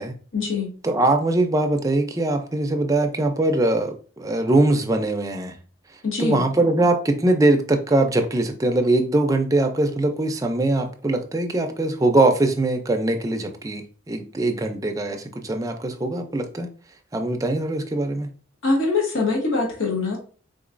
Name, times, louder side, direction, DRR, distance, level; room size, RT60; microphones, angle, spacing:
voice 1, 0.3-0.7 6.0-6.4 18.6-20.2, left 3 dB, 75° left, 1.0 m, -23 dB
voice 2, 0.8-5.6 6.2-16.7 17.1-18.3, right 2 dB, 15° right, 0.4 m, -22 dB
3.7 x 3.0 x 2.4 m
head